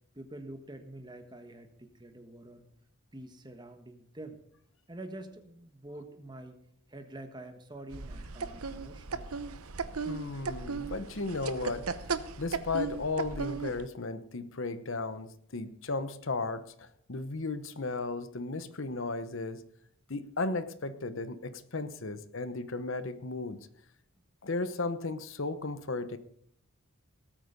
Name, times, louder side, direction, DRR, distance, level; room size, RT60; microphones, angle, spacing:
voice 1, 0.1-2.7 3.1-4.4 4.9-6.6 6.9-9.3, right 1 dB, 20° right, 7 dB, 1.4 m, -46 dB
sound 1, 7.9-13.9, right 4 dB, 85° right, 0.9 m, -36 dB
voice 2, 10.0-11.9 12.4-19.6 20.1-23.6 24.4-26.2, left 3 dB, 60° left, 12 dB, 0.9 m, -35 dB
18.5 x 8.6 x 5.2 m, 0.67 s
head